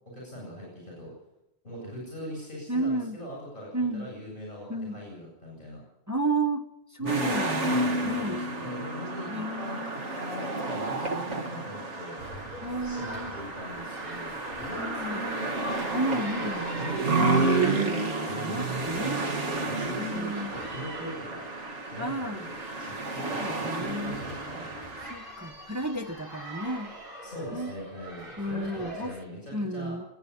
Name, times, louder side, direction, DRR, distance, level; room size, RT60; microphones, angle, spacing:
voice 1, 0.1-1.1 1.6-5.8 7.0-7.4 7.7-12.2 12.8-15.5 16.3-17.4 18.3-18.7 19.0-19.1 19.6-21.4 21.9-24.8 27.2-30.0, equal, 45° left, -3 dB, 8.2 m, -41 dB
voice 2, 2.7-3.2 3.7-4.1 4.7-5.0 6.1-6.6 6.9-7.7 8.0-8.4 9.3-9.9 12.6-13.3 14.8-15.3 15.9-16.6 17.2-19.2 20.0-20.6 22.0-22.4 23.2-24.2 25.1-26.9 27.5-27.7 28.4-29.1 29.5-30.1, right 2 dB, 15° right, 5 dB, 1.0 m, -32 dB
sound 1, 7.1-25.1, right 2 dB, 75° right, 1.9 m, -31 dB
sound 2, 12.2-29.2, equal, 55° right, 7.6 m, -42 dB
27.0 x 9.8 x 10.0 m, 0.89 s
omnidirectional pair, 1.2 m